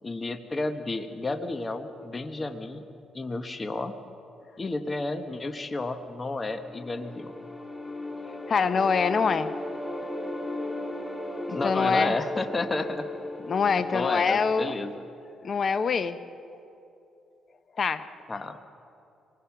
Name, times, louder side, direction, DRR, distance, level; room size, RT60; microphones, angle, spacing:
voice 1, 0.0-2.8 3.1-3.9 4.6-7.4 11.5-13.1 13.7-15.0 18.3-18.6, left 2 dB, 25° left, 8 dB, 1.2 m, -32 dB
sound 1, 6.3-15.4, left 1 dB, 10° left, 2.1 m, -37 dB
voice 2, 8.5-9.5 11.5-12.2 13.5-14.7 15.4-16.2 17.8-18.1, left 5 dB, 45° left, 12 dB, 0.9 m, -24 dB
26.0 x 20.0 x 5.9 m, 2.7 s
cardioid pair, 90°, 0 cm